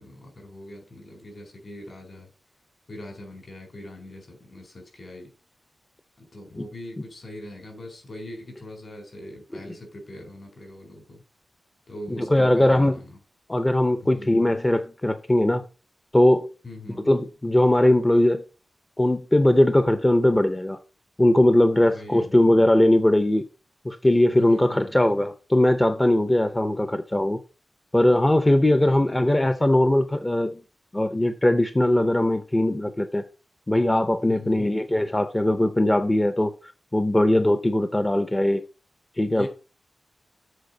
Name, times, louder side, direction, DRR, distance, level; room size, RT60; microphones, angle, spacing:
voice 1, 0.0-2.3 2.9-5.3 6.2-11.2 11.9-13.2 14.0-14.5 16.6-17.1 21.8-22.3 24.4-25.2 28.7-29.2 34.3-34.7 39.3-39.5, left 1 dB, 55° left, 3.9 m, -42 dB
voice 2, 12.1-13.0 13.5-15.6 16.1-16.5 17.1-18.4 19.0-20.8 21.2-23.4 23.8-27.4 27.9-30.6 30.9-33.2 33.7-38.6 39.2-39.5, left 1 dB, 15° left, 0.5 m, -20 dB
7.9 x 4.2 x 6.6 m
wide cardioid pair, 125°, 0 cm